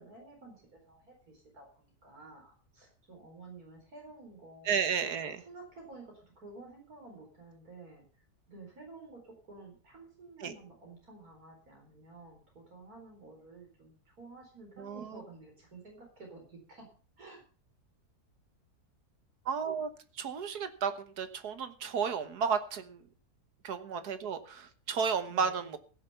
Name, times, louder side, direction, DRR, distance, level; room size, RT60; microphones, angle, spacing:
voice 1, 0.0-4.8 5.2-8.0 8.5-16.9 17.2-17.4 21.8-21.9 25.3-25.7, right 3 dB, 70° right, 0 dB, 4.8 m, -52 dB
voice 2, 4.7-5.4 10.4-10.5 14.8-15.2 19.5-19.9 20.2-23.0 23.6-25.8, right 6 dB, 85° right, 10 dB, 1.8 m, -33 dB
16.0 x 7.0 x 6.9 m, 0.39 s
omnidirectional pair, 1.6 m